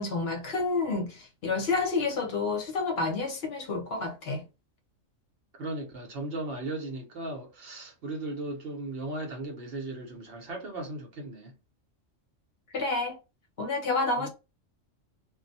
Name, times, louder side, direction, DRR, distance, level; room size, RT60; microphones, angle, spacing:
voice 1, 0.0-4.4 12.7-13.2 13.6-14.3, left 3 dB, 60° left, 0.8 m, -29 dB
voice 2, 5.5-11.6 14.2-14.3, right 2 dB, 55° right, 0.9 m, -37 dB
2.3 x 2.1 x 3.9 m
omnidirectional pair, 1.3 m